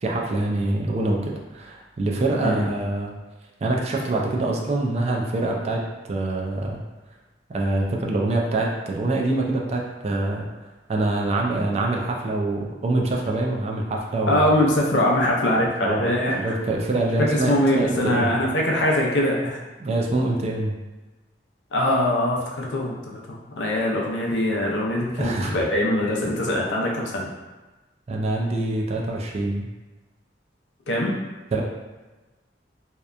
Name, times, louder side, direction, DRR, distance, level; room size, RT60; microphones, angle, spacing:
voice 1, 0.0-3.1 3.6-5.8 6.1-6.8 7.5-10.5 10.9-14.4 15.8-18.3 19.8-20.7 25.2-25.6 28.1-29.7 31.5-31.6, right 2 dB, 35° right, -1 dB, 0.3 m, -25 dB
voice 2, 14.3-16.6 17.3-19.6 21.7-27.3 30.9-31.1, left 1 dB, 80° left, -2 dB, 0.5 m, -22 dB
2.8 x 2.1 x 2.4 m, 1.2 s
head